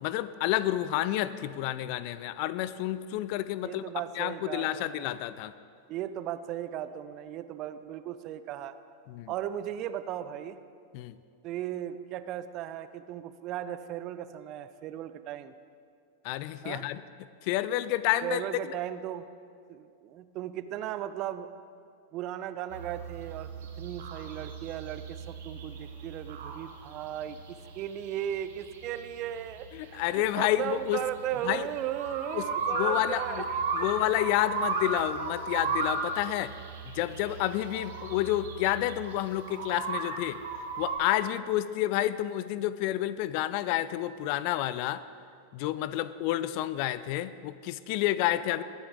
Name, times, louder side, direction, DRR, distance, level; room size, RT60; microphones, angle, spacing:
voice 1, 0.0-3.8 4.2-5.5 9.1-9.3 10.9-11.1 16.2-17.0 17.4-18.4 29.7-31.0 31.4-31.7 32.3-33.4 33.7-36.5 36.9-40.4 40.8-45.0 45.5-48.6, left 14 dB, 45° left, 15 dB, 0.4 m, -29 dB
voice 2, 3.6-5.1 5.9-8.7 9.3-10.6 11.4-15.5 16.6-16.9 18.2-19.3 19.7-21.5 22.1-23.5 23.8-33.9, right 11 dB, 40° right, 12 dB, 0.6 m, -36 dB
sound 1, 22.7-41.0, right 4 dB, 60° right, 1.6 m, -36 dB
20.5 x 9.2 x 3.7 m, 2.3 s
figure-of-eight pair, 90°, 0 cm